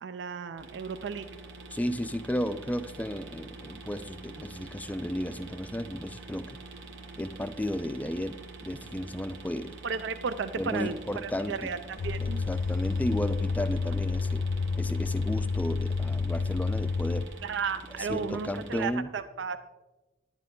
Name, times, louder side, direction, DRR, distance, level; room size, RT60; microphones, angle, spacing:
voice 1, 0.0-1.3 9.8-12.5 17.4-19.6, right 5 dB, 65° right, 11 dB, 0.4 m, -34 dB
sound 1, 0.6-18.9, right 3 dB, 85° right, 1.5 m, -46 dB
voice 2, 1.7-6.6 7.2-9.8 10.6-11.7 12.2-14.5 14.7-17.3 18.0-19.1, equal, 10° left, 12 dB, 0.4 m, -33 dB
sound 2, 9.8-15.5, right 1 dB, 40° right, 1.3 m, -54 dB
sound 3, 12.0-17.2, left 4 dB, 80° left, 0.4 m, -29 dB
11.0 x 9.8 x 3.8 m, 1.1 s
head